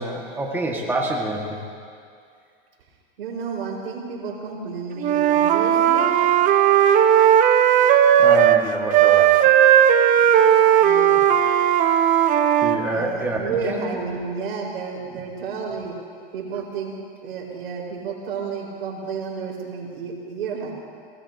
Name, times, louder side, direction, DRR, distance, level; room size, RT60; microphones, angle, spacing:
voice 1, 0.0-1.6 8.2-9.4 12.6-13.8, right 2 dB, 5° right, -1 dB, 1.5 m, -27 dB
voice 2, 3.2-6.2 10.8-11.3 12.8-16.0 16.3-16.9 17.2-20.7, right 5 dB, 85° right, -2 dB, 4.4 m, -31 dB
Wind instrument woodwind instrument, 5.0-8.6 8.9-12.8, right 10 dB, 25° right, 0.6 m, -16 dB
23.5 x 19.0 x 2.7 m, 2.3 s
supercardioid pair, 140°, 29 cm